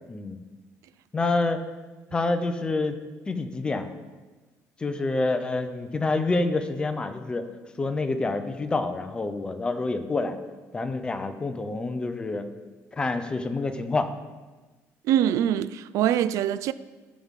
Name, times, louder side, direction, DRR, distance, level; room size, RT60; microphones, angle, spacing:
voice 1, 0.1-0.4 1.1-1.7 2.1-3.0 3.3-3.9 4.8-7.5 7.8-10.4 10.7-12.5 12.9-14.1, left 3 dB, 15° left, 0.7 m, -27 dB
voice 2, 15.1-16.7, right 10 dB, 65° right, 0.3 m, -23 dB
14.5 x 7.4 x 3.7 m
cardioid pair, 170°, 6 cm